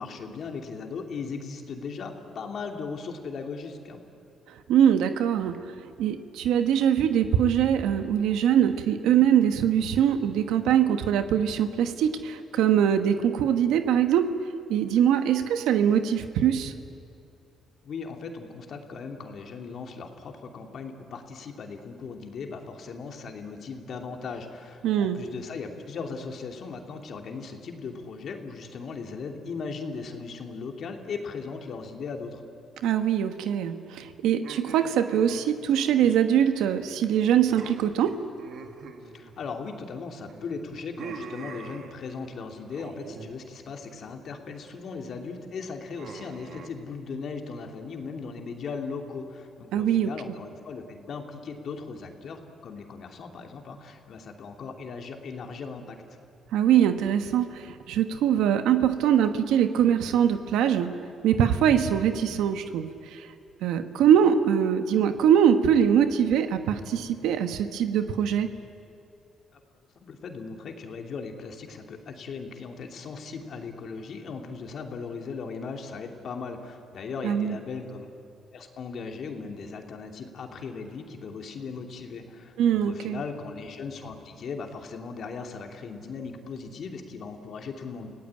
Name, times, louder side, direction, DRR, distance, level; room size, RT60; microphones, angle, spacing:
voice 1, 0.0-4.0 17.8-32.4 39.1-56.0 69.5-69.6 69.9-78.2 78.5-88.1, left 5 dB, 60° left, 3 dB, 2.8 m, -38 dB
voice 2, 4.7-5.6 6.0-14.3 14.7-16.7 24.8-25.2 32.8-38.1 49.7-50.1 56.5-60.9 61.2-63.3 63.6-68.5 77.2-77.6 82.6-83.2, right 9 dB, 90° right, 8 dB, 1.2 m, -23 dB
sound 1, 34.4-36.9 37.1-37.3 37.6-39.9 40.3-42.3 42.7-43.3 43.6-44.1 44.6-45.0 46.0-46.7, right 5 dB, 65° right, 1.9 m, -44 dB
29.5 x 17.5 x 8.9 m, 2.5 s
cardioid pair, 90°, 0 cm